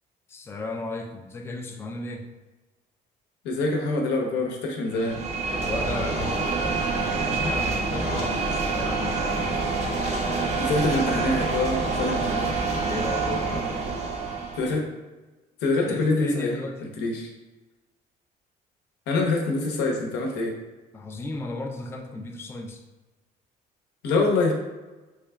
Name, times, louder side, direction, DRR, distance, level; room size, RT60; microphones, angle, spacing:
voice 1, 0.3-2.3 5.6-9.6 12.9-14.0 15.9-16.8 20.9-22.8, left 2 dB, 15° left, 3 dB, 0.3 m, -35 dB
voice 2, 3.4-5.2 10.6-12.5 14.6-14.9 15.6-16.5 17.0-17.3 19.1-20.6 24.0-24.5, left 2 dB, 90° left, 1 dB, 0.7 m, -25 dB
sound 1, 4.9-14.8, right 3 dB, 40° right, 0.6 m, -27 dB
3.2 x 2.2 x 3.4 m, 1.2 s
cardioid pair, 110°, 17 cm